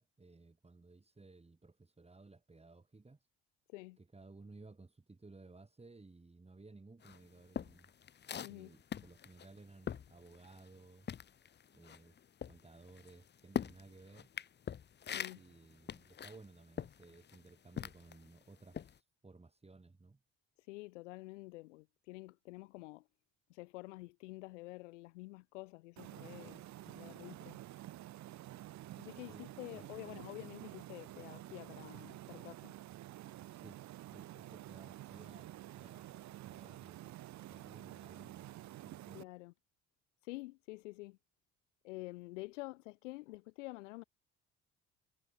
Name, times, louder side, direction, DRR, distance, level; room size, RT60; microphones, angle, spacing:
voice 1, 0.0-3.3 4.0-7.9 8.5-11.3 11.7-12.2 12.4-14.3 15.3-20.2 29.3-29.5 29.7-30.2 33.5-37.1 37.5-38.5 38.8-39.2, right 3 dB, 15° right, 2.7 m, -58 dB
sound 1, 7.0-10.8 11.0-18.3 18.7-19.0, left 8 dB, 30° left, 0.7 m, -43 dB
voice 2, 8.4-8.8 15.0-15.4 20.6-23.1 23.5-27.6 29.0-32.7 39.1-39.5 40.2-41.2 41.8-44.0, left 22 dB, 80° left, 0.7 m, -49 dB
sound 2, 26.0-39.2, right 14 dB, 50° right, 0.8 m, -50 dB
hypercardioid pair, 55°, 36 cm